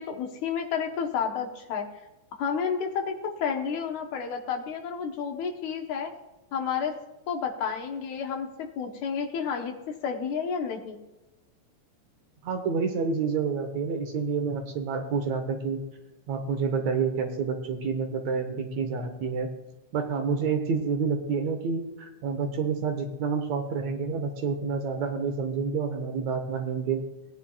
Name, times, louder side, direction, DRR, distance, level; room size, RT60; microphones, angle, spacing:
voice 1, 0.0-1.9 2.4-6.1 6.5-7.0 7.3-11.0, left 6 dB, 70° left, 3 dB, 2.3 m, -31 dB
voice 2, 12.4-15.8 16.3-19.5 19.9-27.1, right 5 dB, 65° right, 5 dB, 2.0 m, -28 dB
18.5 x 10.0 x 2.3 m, 1.0 s
omnidirectional pair, 3.8 m